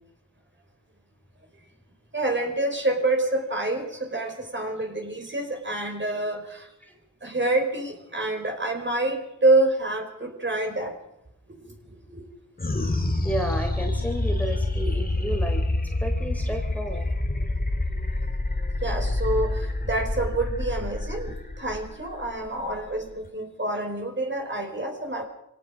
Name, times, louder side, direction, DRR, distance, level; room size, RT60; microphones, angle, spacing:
voice 1, 2.1-6.7 7.2-11.0 11.6-12.2 14.3-14.4 18.8-25.2, right 2 dB, 35° right, 3 dB, 4.7 m, -27 dB
sound 1, 12.6-23.3, left 2 dB, 25° left, 2.5 m, -27 dB
voice 2, 13.2-15.6 16.0-17.1, right 1 dB, 5° left, 3 dB, 3.4 m, -32 dB
24.0 x 17.5 x 6.3 m, 0.82 s
cardioid pair, 60°, 34 cm